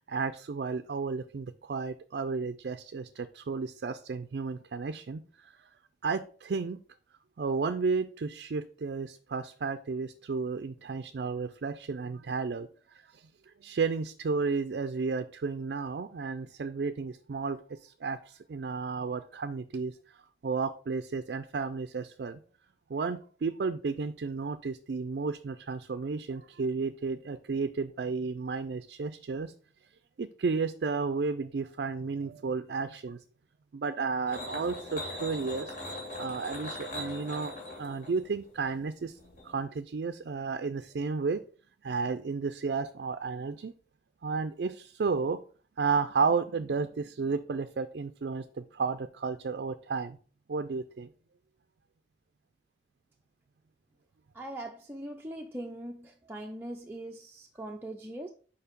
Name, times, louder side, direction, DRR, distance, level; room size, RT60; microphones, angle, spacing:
voice 1, 0.0-5.2 6.0-6.8 7.4-12.7 13.1-13.3 13.6-20.0 20.4-22.4 22.9-29.5 30.2-33.2 33.7-35.7 36.2-39.2 39.4-41.4 41.8-43.7 44.2-45.4 45.8-50.2 50.5-51.1, right 4 dB, 65° right, 10 dB, 0.4 m, -32 dB
sound 1, 34.3-39.6, left 1 dB, 45° left, 2.4 m, -41 dB
voice 2, 54.3-58.3, right 1 dB, 10° right, 0 dB, 0.5 m, -41 dB
5.2 x 4.6 x 5.1 m, 0.42 s
head